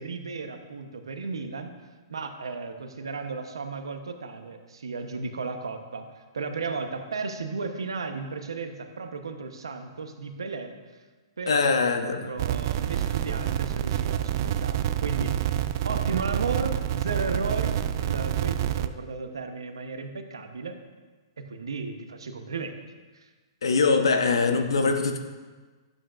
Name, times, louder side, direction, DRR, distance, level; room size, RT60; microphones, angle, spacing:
voice 1, 0.0-1.7 2.1-10.7 11.4-11.7 12.0-15.4 15.8-20.8 21.4-22.8, right 4 dB, 85° right, 7 dB, 1.0 m, -34 dB
voice 2, 11.5-12.3 23.6-25.2, left 4 dB, 85° left, 5 dB, 1.0 m, -23 dB
sound 1, 12.4-18.9, right 11 dB, 50° right, 0.4 m, -27 dB
12.0 x 8.0 x 2.5 m, 1.3 s
hypercardioid pair, 125°, 2 cm